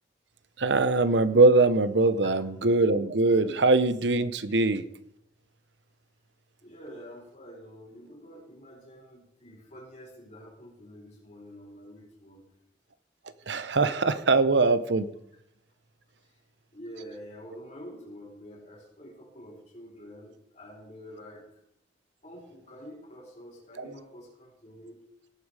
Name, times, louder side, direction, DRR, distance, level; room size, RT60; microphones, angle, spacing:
voice 1, 0.6-4.8 13.5-15.1 23.8-23.9, right 3 dB, 80° right, 13 dB, 0.8 m, -22 dB
voice 2, 6.6-12.4 16.7-21.4 22.2-25.0, equal, 40° left, -3 dB, 5.4 m, -47 dB
17.5 x 8.6 x 4.9 m, 0.74 s
head